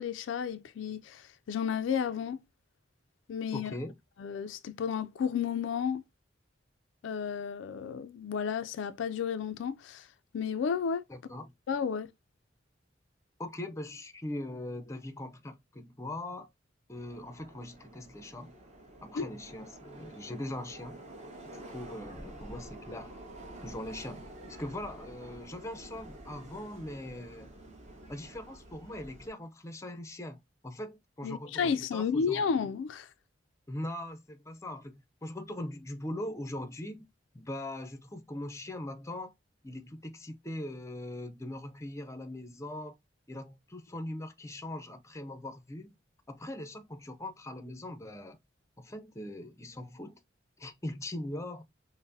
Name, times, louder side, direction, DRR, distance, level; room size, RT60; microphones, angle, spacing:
voice 1, 0.0-2.4 3.3-3.7 4.2-6.0 7.0-10.1 10.3-11.0 11.7-12.1 19.1-19.3 31.2-33.1, left 6 dB, 75° left, 0.3 m, -32 dB
voice 2, 3.5-3.9 11.1-11.5 13.4-16.5 16.9-18.5 19.0-21.0 21.5-23.1 23.6-24.2 24.5-27.5 28.1-32.4 33.7-37.0 37.3-39.3 39.6-43.0 43.3-46.0 46.3-48.4 48.8-50.2 50.6-51.6, left 1 dB, 15° left, 0.5 m, -41 dB
Subway metro underground, 16.9-29.3, right 1 dB, 40° right, 1.1 m, -49 dB
5.5 x 2.1 x 2.6 m
head